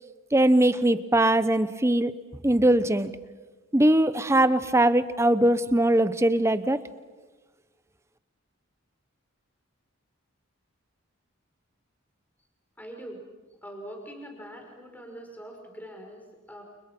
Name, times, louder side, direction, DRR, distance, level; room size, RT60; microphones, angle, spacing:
voice 1, 0.3-2.1 2.4-3.1 3.7-6.8, right 1 dB, 15° right, 13 dB, 0.8 m, -21 dB
voice 2, 12.8-13.3 13.6-16.6, equal, 10° left, 2 dB, 5.3 m, -43 dB
30.0 x 30.0 x 6.1 m, 1.3 s
head